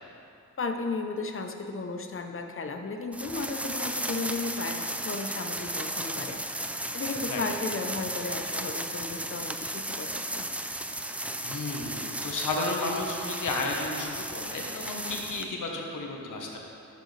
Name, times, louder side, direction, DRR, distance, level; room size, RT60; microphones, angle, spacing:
voice 1, 0.6-6.4 6.9-10.5, left 3 dB, 40° left, 5 dB, 0.7 m, -34 dB
sound 1, 3.1-15.5, right 1 dB, 5° right, 0.4 m, -35 dB
voice 2, 11.4-16.6, left 2 dB, 75° left, 0 dB, 1.2 m, -32 dB
12.5 x 6.4 x 3.3 m, 2.6 s
wide cardioid pair, 85°, 31 cm